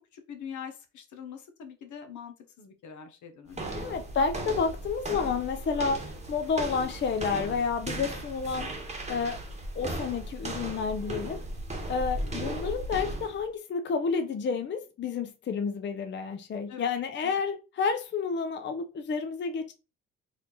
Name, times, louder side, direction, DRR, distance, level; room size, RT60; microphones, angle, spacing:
voice 1, 0.1-3.8 11.7-12.1 16.7-16.9 17.2-17.4, left 7 dB, 75° left, 0.9 m, -44 dB
sound 1, 3.5-13.4, right 1 dB, 25° right, 1.0 m, -36 dB
voice 2, 3.7-8.7 9.1-9.4 9.7-11.4 11.9-19.7, left 5 dB, 40° left, 0.6 m, -30 dB
4.1 x 2.6 x 2.9 m
cardioid pair, 90°, 30 cm